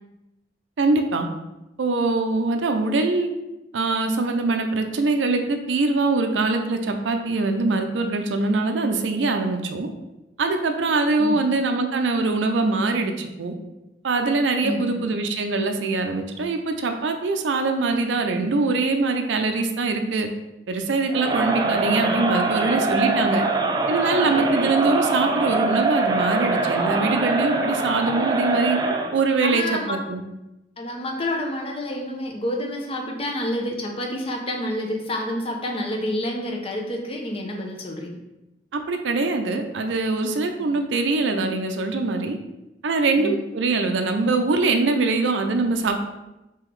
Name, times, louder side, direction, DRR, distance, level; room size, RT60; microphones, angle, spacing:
voice 1, 0.8-1.3 1.8-3.3 3.7-9.9 10.4-13.5 14.0-20.3 20.7-23.5 23.9-28.8 29.1-30.2 38.7-42.4 42.8-46.0, right 3 dB, 90° right, 5 dB, 0.5 m, -23 dB
voice 2, 11.2-11.5 14.6-15.1 29.4-30.0 30.8-38.2 40.6-40.9 43.2-43.4, left 1 dB, 30° left, 1 dB, 0.7 m, -29 dB
Crowd, 21.1-29.2, right 3 dB, 20° right, 0.4 m, -23 dB
3.8 x 2.9 x 4.6 m, 0.97 s
head